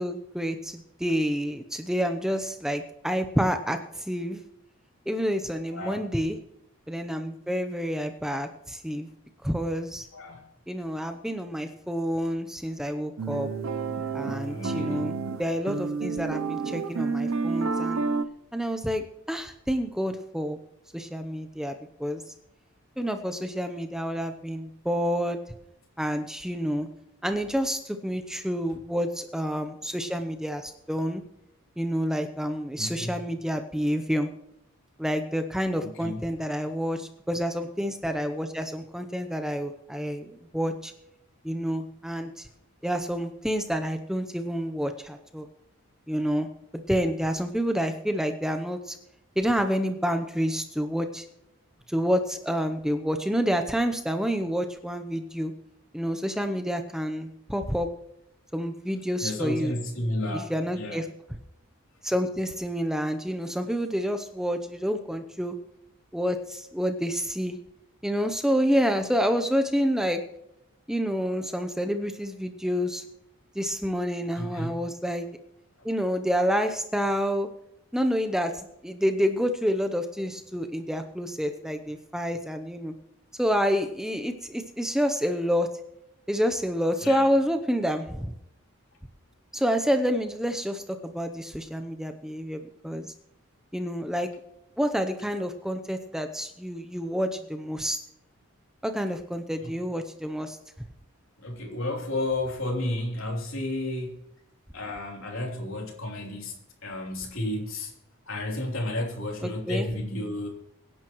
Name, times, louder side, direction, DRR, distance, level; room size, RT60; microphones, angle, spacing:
voice 1, 0.0-4.4 5.1-6.4 6.9-9.1 9.4-10.0 10.7-13.5 14.1-18.0 18.5-20.6 20.9-21.7 22.0-22.3 23.0-25.4 26.0-26.9 27.2-31.2 31.8-34.3 35.0-40.9 41.4-42.5 42.8-45.5 46.1-46.5 46.9-49.0 49.4-51.2 51.9-55.5 55.9-57.9 58.5-59.7 60.3-61.1 62.0-65.5 66.1-67.6 68.0-70.2 70.9-73.0 73.6-75.3 75.8-77.5 77.9-82.9 83.4-85.7 86.3-88.3 89.5-93.1 93.7-94.3 94.8-98.0 98.8-100.6 109.7-109.9, equal, 5° right, 6 dB, 0.7 m, -28 dB
voice 2, 5.7-6.1 10.1-10.5 14.5-15.2 32.8-33.2 35.8-36.2 59.2-61.0 71.3-71.4 74.3-74.7 87.0-87.3 101.4-104.3 104.7-107.9 108.3-110.5, left 1 dB, 70° left, 0 dB, 3.3 m, -32 dB
sound 1, 13.2-18.2, right 4 dB, 70° right, 0.7 m, -30 dB
23.5 x 10.5 x 3.1 m, 0.81 s
head